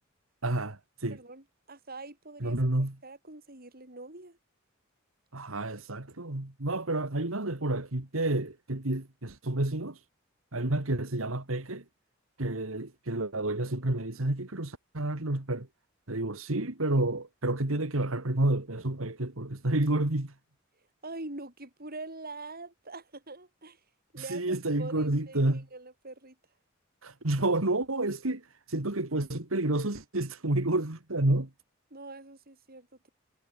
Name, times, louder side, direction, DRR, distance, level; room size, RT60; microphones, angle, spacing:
voice 1, 0.4-1.2 2.4-2.9 5.3-10.0 10.5-11.8 12.4-15.7 16.1-20.3 24.2-25.6 27.0-28.4 28.7-31.5, right 2 dB, 85° right, 2.3 m, -30 dB
voice 2, 1.1-2.6 3.0-4.4 10.5-10.9 21.0-23.8 24.1-26.4 31.9-33.1, right 2 dB, 50° right, 7.6 m, -44 dB
head